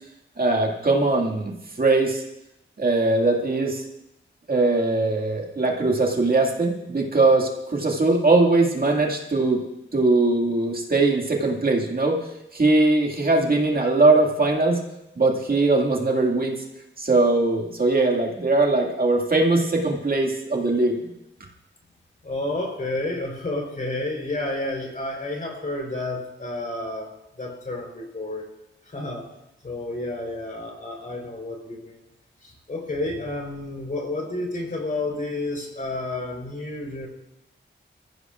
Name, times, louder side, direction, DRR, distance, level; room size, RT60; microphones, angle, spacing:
voice 1, 0.4-2.2 2.8-3.8 4.5-9.6 9.9-12.2 12.5-14.8 15.2-16.6 17.0-21.1, right 2 dB, 45° right, 0 dB, 2.1 m, -21 dB
voice 2, 22.2-28.5 28.8-29.3 29.6-32.0 32.4-37.1, left 2 dB, 45° left, 0 dB, 4.1 m, -30 dB
24.5 x 15.0 x 2.5 m, 0.88 s
wide cardioid pair, 105°, 20 cm